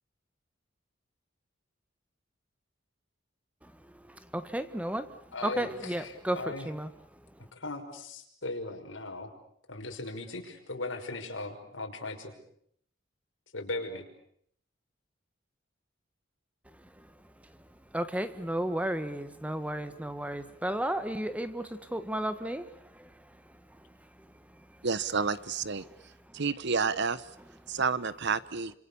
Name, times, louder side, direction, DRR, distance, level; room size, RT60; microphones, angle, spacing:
voice 1, 4.1-6.9 16.8-17.1 17.9-23.1 25.8-26.0, right 1 dB, 5° right, 11 dB, 1.4 m, -34 dB
voice 2, 5.3-6.7 7.5-9.3 9.7-12.3 13.5-14.1, left 2 dB, 85° left, 3 dB, 5.9 m, -38 dB
voice 3, 24.8-25.8 26.3-27.2 27.7-28.7, right 5 dB, 65° right, 16 dB, 1.1 m, -29 dB
29.5 x 27.0 x 7.1 m, 0.68 s
head